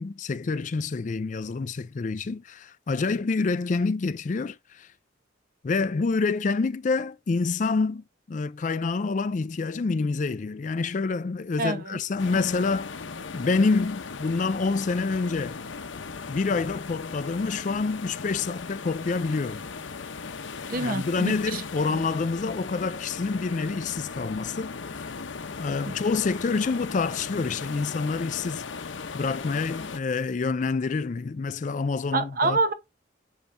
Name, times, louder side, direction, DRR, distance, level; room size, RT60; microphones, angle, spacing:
voice 1, 0.0-4.9 5.6-12.9 13.3-15.6 16.3-19.6 20.7-24.7 25.6-28.6 29.1-32.6, left 4 dB, 40° left, 0.4 m, -27 dB
voice 2, 11.6-12.0 12.3-12.4 20.7-21.6 21.9-22.0 25.9-26.0 32.1-32.7, right 2 dB, 50° right, 0.9 m, -27 dB
sound 1, 12.2-30.0, left 5 dB, 85° left, 0.7 m, -38 dB
7.2 x 5.3 x 2.6 m
head